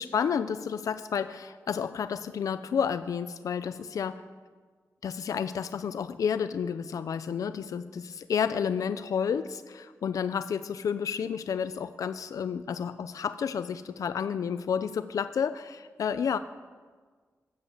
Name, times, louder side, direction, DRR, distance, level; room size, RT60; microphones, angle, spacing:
voice 1, 0.0-4.2 5.0-16.4, left 7 dB, 80° left, 12 dB, 0.6 m, -31 dB
16.0 x 11.5 x 8.0 m, 1.5 s
wide cardioid pair, 110°, 6 cm